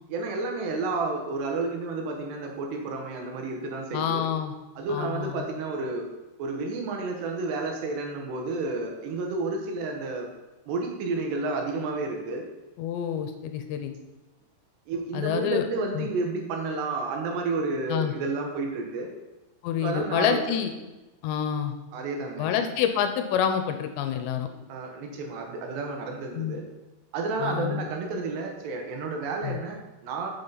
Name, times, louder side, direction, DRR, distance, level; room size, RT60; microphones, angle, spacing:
voice 1, 0.1-4.2 4.8-6.1 6.4-10.3 10.7-12.5 14.9-19.1 19.8-20.4 21.9-22.5 24.7-26.7 27.1-30.3, right 3 dB, 75° right, 2 dB, 3.2 m, -31 dB
voice 2, 3.9-4.5 4.9-5.5 12.8-14.0 15.1-15.7 16.0-16.1 17.9-18.1 19.6-20.7 21.2-21.8 22.4-24.5 26.3-26.6 27.4-27.9 29.4-29.6, left 9 dB, 80° left, 7 dB, 2.9 m, -27 dB
9.3 x 7.3 x 4.0 m, 1.1 s
omnidirectional pair, 5.1 m